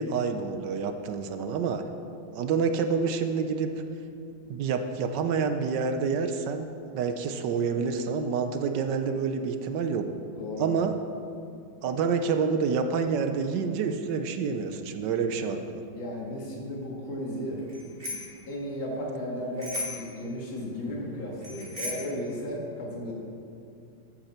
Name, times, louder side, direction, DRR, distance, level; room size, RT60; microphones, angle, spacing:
voice 1, 0.0-1.8 2.3-3.7 4.5-6.7 6.9-10.1 10.6-11.0 11.8-15.8, right 5 dB, 70° right, 7 dB, 1.2 m, -28 dB
voice 2, 10.4-10.7 15.9-17.6 18.1-18.2 18.5-23.1, equal, 85° left, -3 dB, 2.8 m, -34 dB
Bicycle bell, 17.7-18.4 19.6-20.2 21.4-22.2, left 2 dB, 20° right, 2.9 m, -36 dB
13.0 x 8.7 x 4.3 m, 2.5 s
omnidirectional pair, 2.1 m